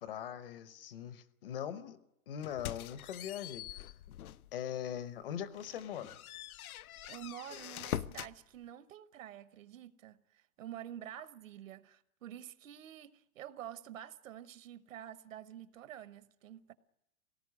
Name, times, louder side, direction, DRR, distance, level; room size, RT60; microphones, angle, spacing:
voice 1, 0.0-2.0 2.3-3.9 4.5-6.2, left 9 dB, 40° left, 0.9 m, -41 dB
sound 1, 2.4-4.5 5.0-5.1 5.5-8.4, left 12 dB, 85° left, 0.7 m, -43 dB
voice 2, 7.0-16.7, right 11 dB, 65° right, 1.1 m, -48 dB
21.0 x 18.5 x 9.5 m
supercardioid pair, 175°, 42 cm